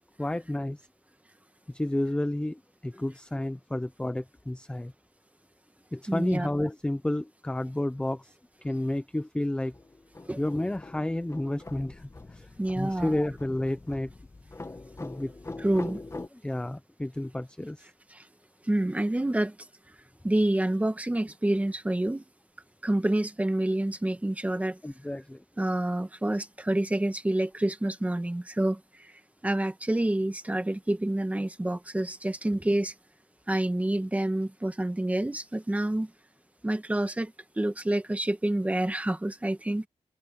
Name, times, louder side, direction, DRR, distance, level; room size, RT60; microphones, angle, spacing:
voice 1, 0.2-0.8 1.7-4.9 5.9-8.3 8.6-9.7 10.4-12.5 12.8-14.1 15.0-15.3 16.4-17.9 24.8-25.4, left 1 dB, 10° left, 0.7 m, -31 dB
voice 2, 6.1-6.5 10.3-10.4 12.6-13.1 15.6-16.0 18.1-18.3 18.6-19.6 20.2-22.2 22.8-24.8 25.6-32.9 33.5-36.1 36.6-39.9, right 1 dB, 10° right, 1.7 m, -28 dB
sound 1, 9.7-16.3, left 2 dB, 25° left, 1.8 m, -43 dB
wide cardioid pair, 150°, 12 cm